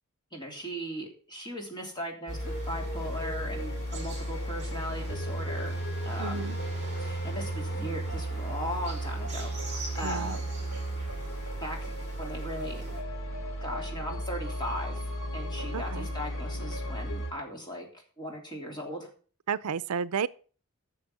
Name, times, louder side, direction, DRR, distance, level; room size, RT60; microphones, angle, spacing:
voice 1, 0.3-5.8 6.0-6.6 7.0-10.4 11.6-13.0 13.6-19.1, equal, 20° left, 3.2 m, -38 dB
sound 1, 2.3-17.3, right 1 dB, 65° left, 3.0 m, -34 dB
sound 2, 2.3-13.0, right 2 dB, 30° right, 5.2 m, -46 dB
voice 2, 6.2-6.6 10.0-10.4 15.7-16.1 19.5-20.3, right 6 dB, 80° right, 0.5 m, -32 dB
9.8 x 7.0 x 7.2 m
head